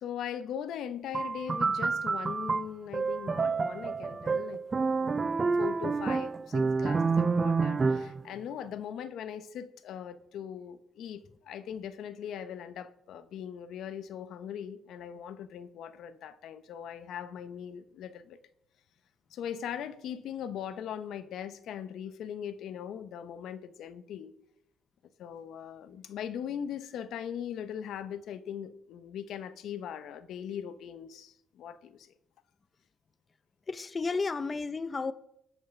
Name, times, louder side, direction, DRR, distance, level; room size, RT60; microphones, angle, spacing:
voice 1, 0.0-4.6 5.0-18.4 19.3-24.3 25.2-32.1, left 9 dB, 80° left, 0.8 m, -40 dB
sound 1, 1.1-8.2, right 4 dB, 30° right, 0.5 m, -28 dB
voice 2, 33.7-35.1, left 4 dB, 30° left, 0.5 m, -32 dB
14.5 x 5.5 x 5.9 m
cardioid pair, 90°, 0 cm